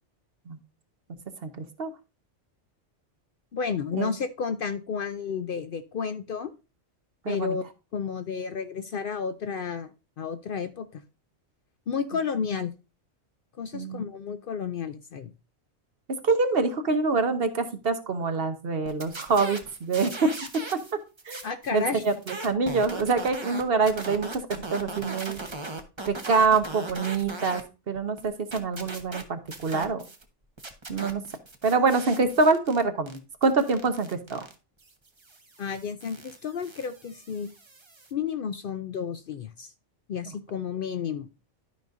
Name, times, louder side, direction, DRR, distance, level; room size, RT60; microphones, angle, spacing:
voice 1, 1.4-1.9 4.0-4.1 7.2-7.6 13.7-14.0 16.2-20.3 21.3-21.4 21.7-25.4 26.1-30.0 30.9-31.2 31.6-34.5, right 4 dB, 55° right, 8 dB, 1.1 m, -25 dB
voice 2, 3.5-6.5 7.3-7.7 7.9-9.9 10.2-11.0 11.9-12.7 13.6-15.3 21.4-22.0 35.6-37.5 38.1-39.7 40.1-41.3, left 6 dB, 60° left, 10 dB, 0.6 m, -31 dB
sound 1, 18.9-20.9 21.2-27.6 28.0-30.2 30.6-38.1, right 2 dB, 25° right, 0.9 m, -39 dB
12.5 x 5.2 x 2.5 m, 0.30 s
omnidirectional pair, 1.2 m